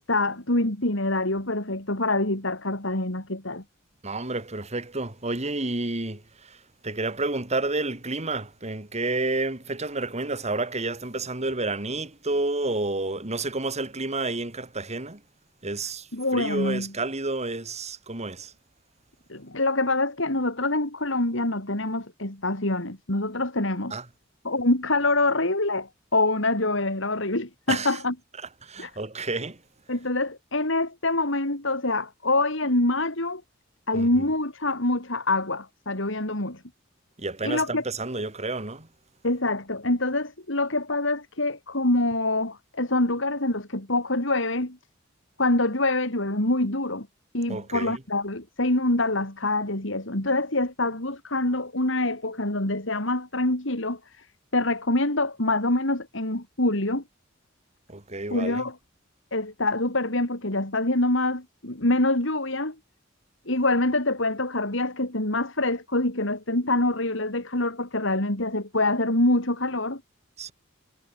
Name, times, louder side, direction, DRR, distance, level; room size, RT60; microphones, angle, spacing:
voice 1, 0.0-3.6 16.1-16.9 19.3-23.9 24.4-28.1 28.8-28.9 29.9-33.4 33.9-36.6 37.4-37.8 39.2-44.8 45.4-47.1 47.3-54.2 54.5-57.0 58.3-58.7 59.3-62.7 63.5-70.0, left 2 dB, 70° left, 4.8 m, -25 dB
voice 2, 4.0-15.2 15.6-18.5 23.9-24.1 27.7-28.0 28.4-29.6 33.9-34.3 37.2-38.9 47.5-48.0 57.9-58.7 70.4-70.5, right 2 dB, 35° right, 3.5 m, -30 dB
head